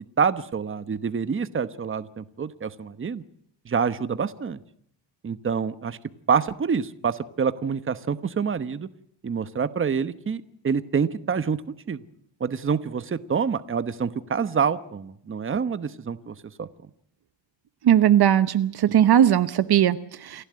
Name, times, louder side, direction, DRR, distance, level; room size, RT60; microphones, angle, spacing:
voice 1, 0.2-3.2 3.7-4.6 5.2-6.0 6.3-8.9 9.2-11.6 11.9-12.0 12.4-16.7, right 6 dB, 25° right, 1.0 m, -27 dB
voice 2, 17.8-20.4, right 10 dB, 55° right, 0.9 m, -19 dB
29.0 x 11.5 x 9.6 m
cardioid pair, 120°, 45 cm